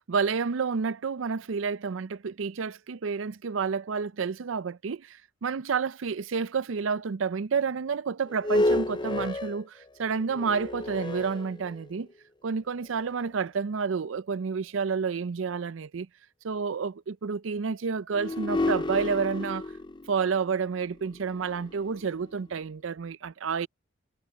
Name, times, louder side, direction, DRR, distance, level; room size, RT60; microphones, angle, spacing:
voice 1, 0.0-12.1 12.4-16.1 16.4-19.6 20.1-23.7, right 5 dB, 80° right, 0.5 m, -30 dB
sound 1, 8.3-12.1 12.8-12.9 18.1-22.4, left 1 dB, 25° left, 0.6 m, -31 dB
head